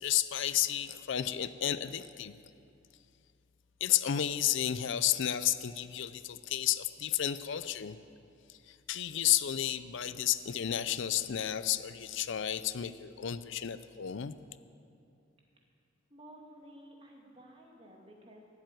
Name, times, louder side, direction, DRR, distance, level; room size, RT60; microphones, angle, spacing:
voice 1, 0.0-2.3 3.8-8.0 8.5-14.3, left 11 dB, 65° left, 13 dB, 0.5 m, -32 dB
voice 2, 16.1-18.5, right 1 dB, 30° right, -1 dB, 2.4 m, -53 dB
16.0 x 7.7 x 9.2 m, 2.5 s
head